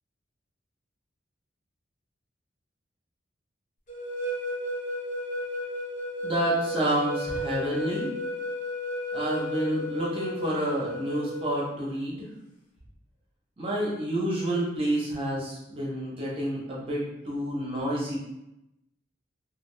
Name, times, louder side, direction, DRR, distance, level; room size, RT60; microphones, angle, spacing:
sound 1, 3.9-11.7, left 1 dB, 40° left, 0.7 m, -33 dB
voice 1, 6.2-8.1 9.1-12.3 13.6-18.2, right 1 dB, 30° right, -5 dB, 0.8 m, -29 dB
2.4 x 2.3 x 3.2 m, 0.88 s
head